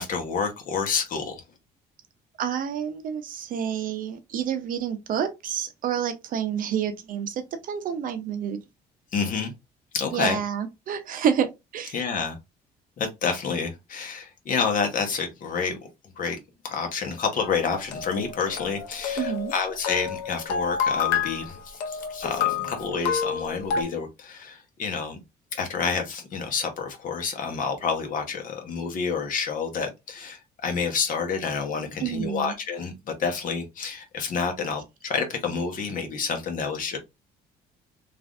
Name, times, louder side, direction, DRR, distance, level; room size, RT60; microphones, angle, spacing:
voice 1, 0.0-1.4 9.1-9.5 9.9-10.4 11.9-12.4 13.0-15.8 16.0-16.4 16.6-25.2 25.5-37.0, left 5 dB, 55° left, 1.0 m, -29 dB
voice 2, 2.4-8.6 10.1-11.9 19.2-19.5 32.0-32.5, right 8 dB, 55° right, 0.6 m, -28 dB
sound 1, 17.4-23.8, left 7 dB, 90° left, 0.6 m, -29 dB
3.2 x 2.5 x 2.4 m
cardioid pair, 110°, 17 cm